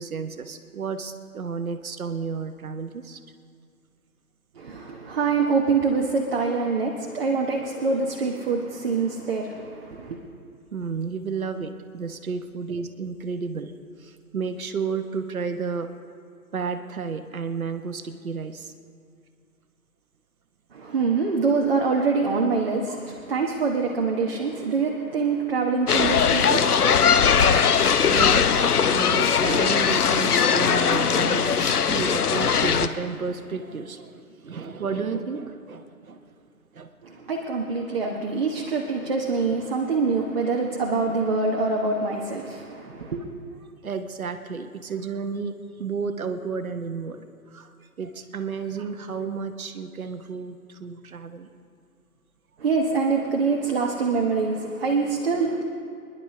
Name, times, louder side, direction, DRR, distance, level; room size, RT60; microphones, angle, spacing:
voice 1, 0.0-3.2 10.7-13.7 14.0-15.9 16.5-18.7 28.1-28.5 28.9-36.2 36.7-37.3 43.8-51.5, right 5 dB, 65° right, 8 dB, 1.1 m, -32 dB
voice 2, 4.5-10.2 20.7-28.1 37.0-43.2 52.6-55.6, right 4 dB, 40° right, 0 dB, 1.2 m, -25 dB
sound 1, 25.9-32.9, left 7 dB, 75° left, 0.8 m, -20 dB
26.5 x 11.0 x 3.2 m, 2.3 s
figure-of-eight pair, 150°, 46 cm